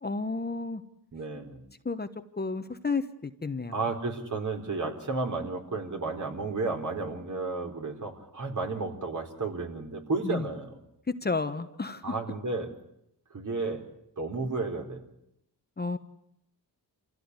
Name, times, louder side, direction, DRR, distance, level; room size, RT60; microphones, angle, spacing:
voice 1, 0.0-0.8 1.8-2.1 2.4-3.8 10.2-10.5 11.1-12.1 15.8-16.0, left 4 dB, 25° left, 8 dB, 1.2 m, -31 dB
voice 2, 1.1-1.6 3.7-10.8 12.0-12.7 13.3-13.8 14.2-15.1, right 3 dB, 45° right, 3 dB, 4.3 m, -32 dB
27.0 x 16.0 x 9.8 m, 0.80 s
cardioid pair, 80°, 41 cm